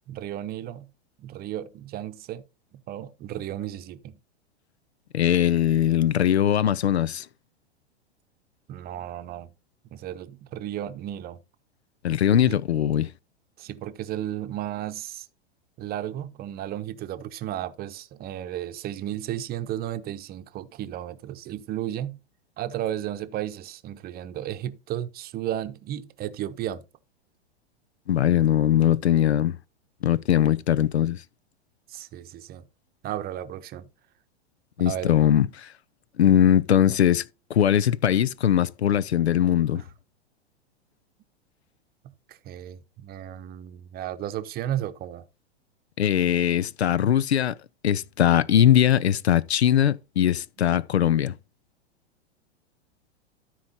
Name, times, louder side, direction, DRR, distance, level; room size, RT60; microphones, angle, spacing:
voice 1, 0.1-0.9 1.2-2.4 2.7-4.1 8.7-9.5 9.9-11.4 12.5-12.6 13.6-15.3 15.8-22.2 22.6-26.8 31.9-32.7 33.0-33.9 34.8-35.1 39.7-39.8 42.0-45.2, right 12 dB, 30° right, 0.8 m, -34 dB
voice 2, 5.1-7.3 12.0-13.1 28.1-29.6 30.0-31.2 34.8-35.7 36.2-37.2 37.5-39.8 46.0-47.6 47.8-51.3, left 10 dB, 85° left, 0.6 m, -21 dB
13.0 x 4.7 x 4.2 m
hypercardioid pair, 105°, 32 cm